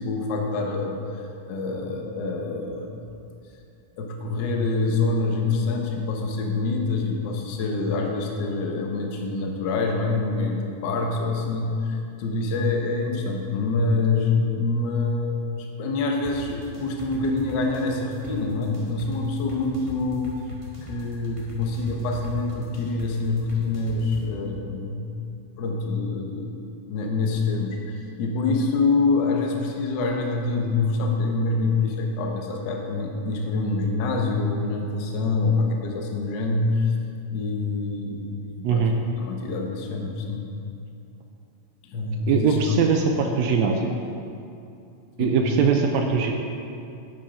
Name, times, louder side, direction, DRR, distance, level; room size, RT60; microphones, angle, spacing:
voice 1, 0.0-3.0 4.0-20.3 20.8-25.0 25.6-26.6 26.9-36.9 37.3-38.8 39.2-40.5 41.8-42.6 45.2-45.4, left 3 dB, 70° left, 1 dB, 1.0 m, -26 dB
sound 1, 16.2-24.2, left 1 dB, 30° right, 0.5 m, -40 dB
voice 2, 38.6-38.9 42.3-43.9 45.2-46.3, right 5 dB, 80° right, 3 dB, 1.8 m, -21 dB
8.7 x 7.5 x 4.8 m, 2.6 s
omnidirectional pair, 3.3 m